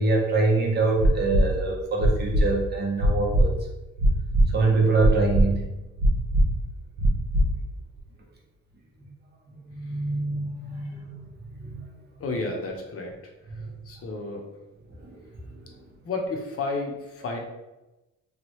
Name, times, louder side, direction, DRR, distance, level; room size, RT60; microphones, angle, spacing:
voice 1, 0.0-3.5 4.5-5.7 9.7-11.2 11.5-11.8 15.0-15.2, right 3 dB, 35° right, -2 dB, 0.9 m, -24 dB
sound 1, 1.0-1.4 2.0-2.4 3.0-3.4 4.0-4.4 5.0-5.4 6.0-6.4 7.0-7.4 8.0-8.1, right 1 dB, 70° right, 0.7 m, -19 dB
voice 2, 12.2-13.1 13.6-14.5 16.0-17.4, left 3 dB, 50° left, 1 dB, 0.8 m, -31 dB
3.1 x 2.3 x 3.0 m, 1.0 s
cardioid pair, 90°, 30 cm